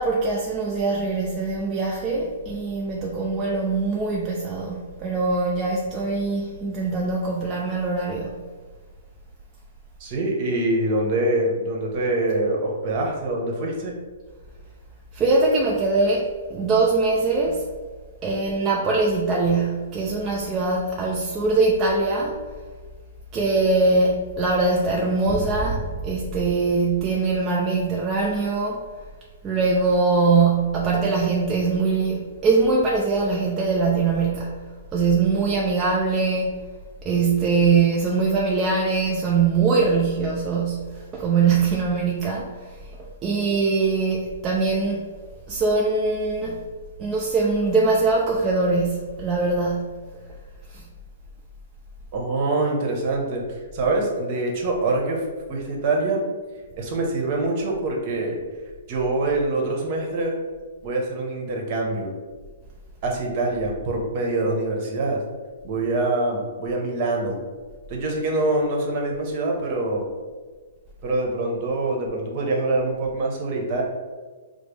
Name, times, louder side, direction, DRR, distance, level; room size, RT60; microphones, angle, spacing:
voice 1, 0.0-8.4 15.1-17.6 18.2-22.4 23.3-28.8 29.4-34.7 34.9-36.6 37.0-42.5 43.2-45.1 45.5-46.6 47.0-50.0 50.7-50.8, right 3 dB, 25° right, -3 dB, 0.4 m, -22 dB
voice 2, 10.0-14.0 52.1-53.4 53.7-55.2 55.5-56.2 56.8-58.4 58.9-60.4 60.8-62.1 63.0-65.2 65.6-67.4 67.9-70.1 71.0-73.8, right 2 dB, 45° right, 0 dB, 1.0 m, -24 dB
5.0 x 2.0 x 3.2 m, 1.4 s
hypercardioid pair, 135°, 0 cm